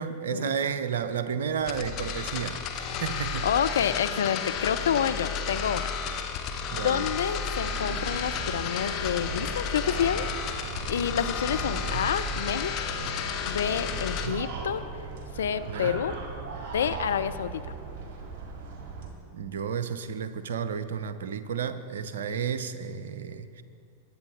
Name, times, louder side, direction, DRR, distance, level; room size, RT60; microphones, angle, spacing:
voice 1, 0.0-3.5 6.7-7.1 11.7-12.1 13.9-14.5 15.7-16.0 19.3-23.6, right 7 dB, 60° right, 11 dB, 0.6 m, -32 dB
sound 1, 1.6-14.3, left 6 dB, 35° left, 1.0 m, -32 dB
voice 2, 3.4-5.9 6.8-12.7 13.5-14.8 15.4-16.2 16.7-17.6, left 8 dB, 65° left, 11 dB, 0.5 m, -28 dB
sound 2, 7.3-19.1, right 4 dB, 45° right, 2.0 m, -39 dB
22.0 x 8.1 x 3.7 m, 2.5 s
figure-of-eight pair, 90°, 0 cm